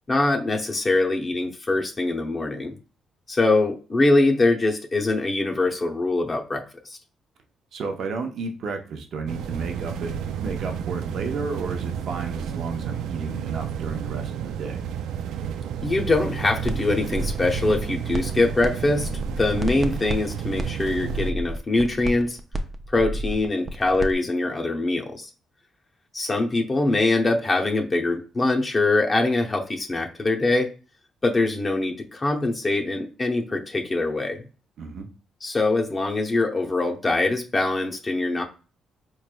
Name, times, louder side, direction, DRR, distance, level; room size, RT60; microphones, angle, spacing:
voice 1, 0.1-2.8 3.3-7.0 15.8-22.4 22.9-25.3 26.1-30.7 31.2-34.4 35.4-38.4, left 2 dB, 30° left, 2 dB, 0.7 m, -23 dB
voice 2, 7.7-10.1 10.4-14.8 34.8-35.1, right 4 dB, 65° right, 4 dB, 0.8 m, -32 dB
sound 1, 9.3-21.3, right 8 dB, 85° right, 0.3 m, -31 dB
sound 2, 16.6-16.8 17.1-18.7 18.9-24.1, right 1 dB, 30° right, 0.5 m, -31 dB
4.4 x 3.2 x 2.2 m, 0.35 s
cardioid pair, 90°, 0 cm